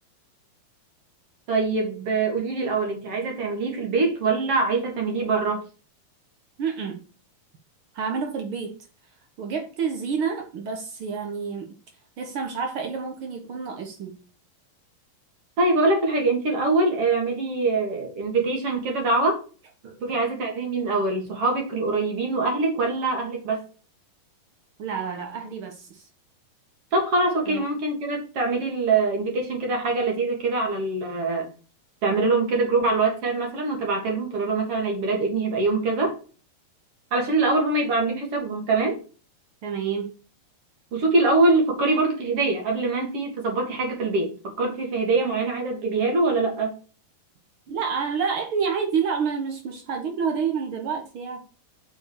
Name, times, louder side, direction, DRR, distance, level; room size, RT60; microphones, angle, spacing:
voice 1, 1.5-5.6 15.6-19.4 20.0-23.6 26.9-31.5 32.0-36.2 37.1-39.0 40.9-46.8, right 3 dB, 45° right, 2 dB, 2.6 m, -24 dB
voice 2, 6.6-7.0 7.9-8.7 9.4-11.7 12.2-14.2 19.8-20.0 24.8-26.1 27.5-27.6 39.6-40.1 47.7-51.4, right 6 dB, 80° right, 3 dB, 1.1 m, -29 dB
7.5 x 4.8 x 6.2 m, 0.37 s
omnidirectional pair, 4.4 m